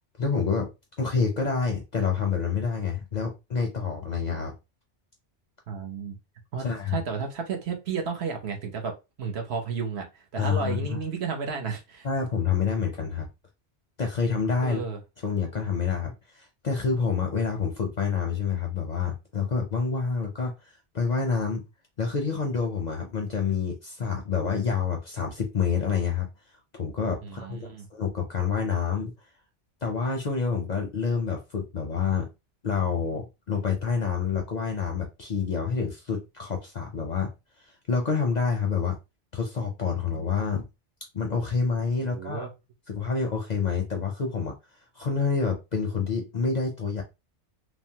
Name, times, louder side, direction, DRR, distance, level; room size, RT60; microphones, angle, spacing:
voice 1, 0.2-0.7 1.0-4.5 6.6-7.0 10.4-11.0 12.0-13.3 14.0-14.8 15.2-20.5 20.9-21.6 22.0-26.3 26.7-29.1 29.8-32.3 32.6-37.3 37.6-39.0 39.3-40.7 41.1-42.5 42.9-44.6 44.9-47.0, left 5 dB, 50° left, 0.5 m, -28 dB
voice 2, 5.7-6.2 6.5-12.1 14.6-15.0 27.2-27.9 42.0-42.5, right 5 dB, 65° right, 1.0 m, -33 dB
3.1 x 2.0 x 2.7 m
omnidirectional pair, 1.2 m